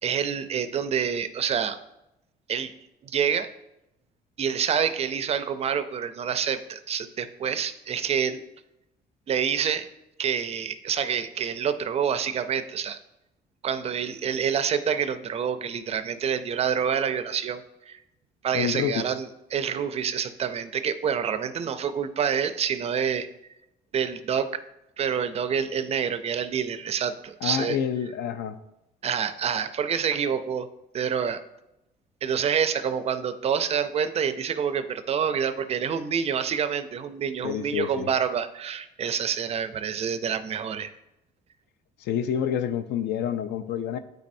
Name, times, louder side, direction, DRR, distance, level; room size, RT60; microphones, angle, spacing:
voice 1, 0.0-1.8 2.5-2.7 3.0-3.5 4.4-8.4 9.3-9.9 10.2-13.0 13.6-18.0 18.4-23.3 23.9-24.6 25.0-27.8 29.0-30.7 30.9-31.4 32.2-40.9, right 7 dB, 40° right, 11 dB, 0.4 m, -27 dB
voice 2, 18.5-19.1 27.4-28.6 37.4-38.1 42.0-44.0, left 9 dB, 75° left, 11 dB, 0.5 m, -28 dB
9.0 x 4.1 x 2.6 m, 0.89 s
cardioid pair, 110°, 17 cm